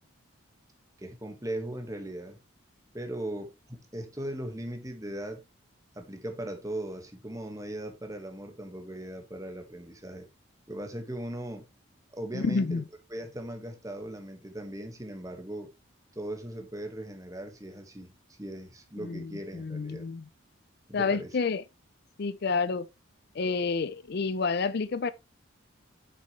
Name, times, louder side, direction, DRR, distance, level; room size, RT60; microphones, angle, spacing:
voice 1, 1.0-2.4 2.9-5.4 5.9-10.3 10.7-11.7 12.1-12.8 13.1-15.7 16.1-20.1 20.9-21.3, right 1 dB, 15° right, 1.6 m, -38 dB
voice 2, 12.3-12.9 19.0-20.3 20.9-21.6 22.2-22.9 23.3-25.1, left 4 dB, 50° left, 0.4 m, -29 dB
8.4 x 6.7 x 3.2 m
head